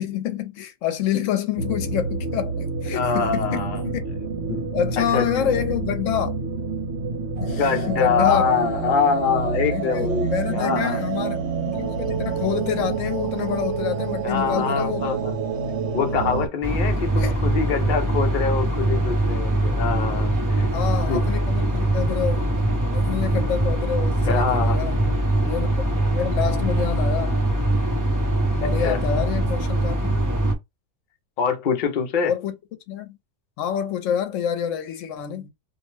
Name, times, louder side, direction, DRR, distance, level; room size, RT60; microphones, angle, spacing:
voice 1, 0.0-4.0 4.7-6.4 7.4-8.4 9.7-15.2 17.2-17.4 20.7-22.5 22.9-25.2 25.4-27.5 28.5-30.2 32.2-32.5 32.9-33.2 33.6-35.5, left 9 dB, 80° left, 1.0 m, -27 dB
sound 1, 1.6-16.5, right 5 dB, 65° right, 1.0 m, -27 dB
voice 2, 2.9-3.8 4.5-4.7 5.0-5.5 7.5-11.0 14.2-15.3 15.9-20.7 21.1-21.2 24.3-24.8 28.8-29.0 31.4-32.3, left 6 dB, 50° left, 0.7 m, -24 dB
sound 2, 16.6-30.5, right 1 dB, 25° right, 0.5 m, -22 dB
2.5 x 2.1 x 3.1 m
omnidirectional pair, 1.3 m